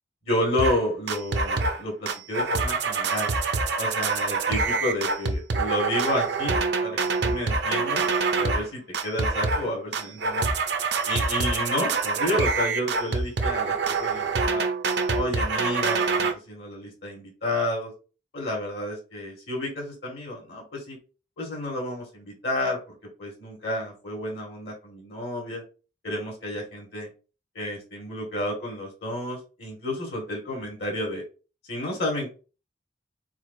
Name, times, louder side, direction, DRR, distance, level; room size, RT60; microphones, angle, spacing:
voice 1, 0.2-3.3 3.8-8.1 8.4-10.5 11.1-14.6 15.1-17.9 18.3-21.0 21.4-25.6 26.0-27.1 27.6-31.2 31.7-32.3, left 1 dB, 60° left, -1 dB, 1.8 m, -31 dB
sound 1, 0.6-0.8 1.1-1.8 2.1-8.7 8.9-9.7 9.9-16.3, right 4 dB, 60° right, 0.6 m, -25 dB
4.8 x 4.0 x 2.6 m, 0.34 s
head